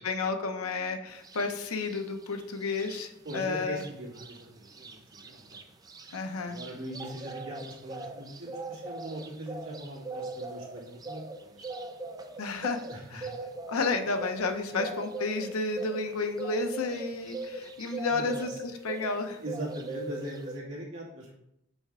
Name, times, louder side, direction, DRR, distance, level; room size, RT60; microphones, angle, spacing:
voice 1, 0.0-3.8 6.1-6.6 12.4-12.8 13.1-13.3 13.7-19.4, left 3 dB, 85° left, 6 dB, 0.7 m, -31 dB
sound 1, 1.2-1.5 1.8-3.4 3.7-19.2 19.4-20.6, right 3 dB, 15° right, 0.4 m, -41 dB
voice 2, 3.2-5.6 6.4-11.6 12.9-13.4 14.7-14.8 18.1-18.6 19.4-21.3, right 1 dB, 70° right, -5 dB, 2.3 m, -41 dB
5.5 x 5.3 x 3.6 m, 0.82 s
head